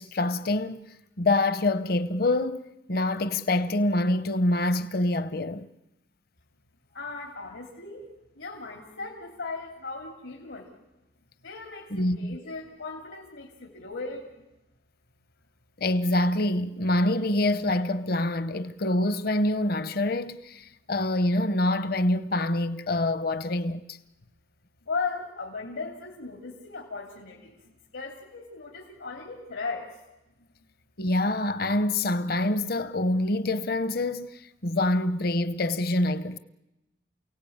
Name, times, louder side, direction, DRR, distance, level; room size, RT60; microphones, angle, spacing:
voice 1, 0.0-5.7 11.9-12.4 15.8-24.0 31.0-36.4, left 1 dB, 50° left, 0.8 m, -26 dB
voice 2, 6.9-8.1 8.4-10.7 11.4-14.3 24.8-27.6 27.9-29.9, left 4 dB, 85° left, 2.9 m, -37 dB
29.0 x 17.5 x 8.7 m
head